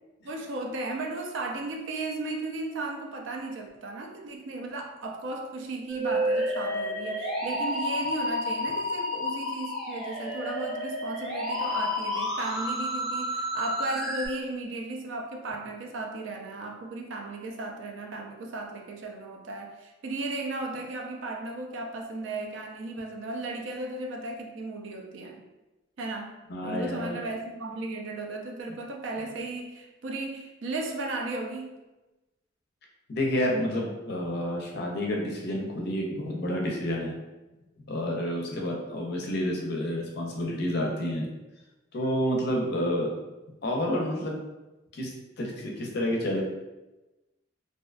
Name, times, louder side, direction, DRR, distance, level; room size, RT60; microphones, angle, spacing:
voice 1, 0.2-25.4 26.0-31.8, right 2 dB, 70° right, 2 dB, 0.4 m, -35 dB
Musical instrument, 5.9-14.3, left 1 dB, ahead, 0.6 m, -30 dB
voice 2, 26.5-27.2 33.1-37.1 37.9-41.3 41.9-43.2 43.6-44.4 44.9-45.1 45.4-46.4, equal, 55° left, 0 dB, 0.5 m, -29 dB
2.6 x 2.2 x 2.4 m, 1.1 s
head